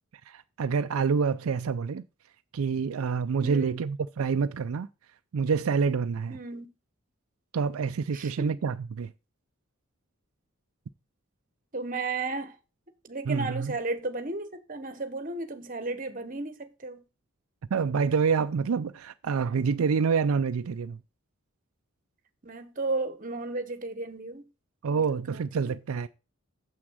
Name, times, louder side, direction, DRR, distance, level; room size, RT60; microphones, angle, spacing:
voice 1, 0.3-2.0 2.5-4.9 5.3-6.4 7.5-9.1 13.2-13.8 17.7-21.0 24.8-26.1, right 5 dB, 80° right, 0.4 m, -27 dB
voice 2, 3.4-3.8 6.3-6.7 8.1-8.6 11.7-12.6 13.0-17.0 22.4-24.5 24.9-25.0 25.3-25.7, right 3 dB, 40° right, 1.0 m, -34 dB
7.2 x 6.1 x 6.2 m
head